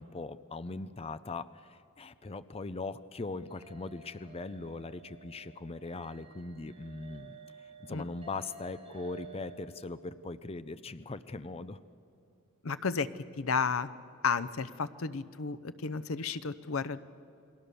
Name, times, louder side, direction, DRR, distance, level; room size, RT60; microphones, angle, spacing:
voice 1, 0.0-7.4 7.8-11.8, left 3 dB, 30° left, 13 dB, 0.6 m, -40 dB
sound 1, 3.1-9.6, right 5 dB, 30° right, 4.0 m, -53 dB
voice 2, 12.6-13.1 13.4-13.9 14.2-17.0, left 5 dB, 85° left, 13 dB, 0.8 m, -32 dB
28.5 x 21.0 x 6.9 m, 2.6 s
head